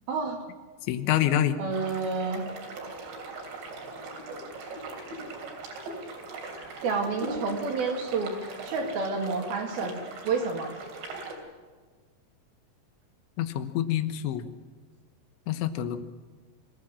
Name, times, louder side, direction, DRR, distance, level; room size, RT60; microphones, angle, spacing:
voice 1, 0.1-0.4 1.6-2.5 6.8-8.4 8.7-10.0 10.3-10.7, right 4 dB, 60° right, 2 dB, 3.9 m, -29 dB
voice 2, 0.9-1.6 13.4-14.4 15.5-16.0, left 11 dB, 85° left, 10 dB, 3.4 m, -26 dB
sound 1, 1.7-11.3, right 2 dB, 75° right, 5.3 m, -40 dB
24.5 x 15.0 x 7.5 m, 1.5 s
omnidirectional pair, 5.2 m